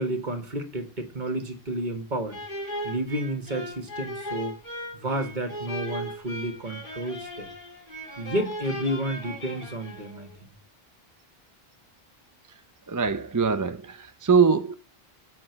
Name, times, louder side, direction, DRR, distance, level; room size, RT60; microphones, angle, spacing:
voice 1, 0.0-2.3 2.8-4.6 4.9-7.5 8.2-10.3, right 1 dB, 50° right, 1.7 m, -31 dB
sound 1, 2.3-10.4, equal, 50° left, 3.6 m, -37 dB
voice 2, 12.9-14.7, right 5 dB, 25° right, 0.5 m, -22 dB
7.7 x 5.8 x 7.7 m
omnidirectional pair, 1.0 m